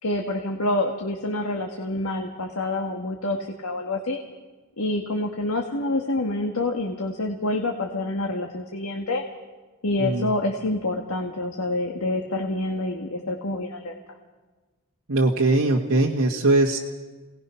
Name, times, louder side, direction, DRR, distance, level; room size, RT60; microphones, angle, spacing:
voice 1, 0.0-4.2 4.8-9.2 9.8-13.9, left 2 dB, 80° left, 2 dB, 1.7 m, -27 dB
voice 2, 15.1-16.8, right 2 dB, 80° right, -1 dB, 1.6 m, -21 dB
28.0 x 19.0 x 5.8 m, 1.3 s
head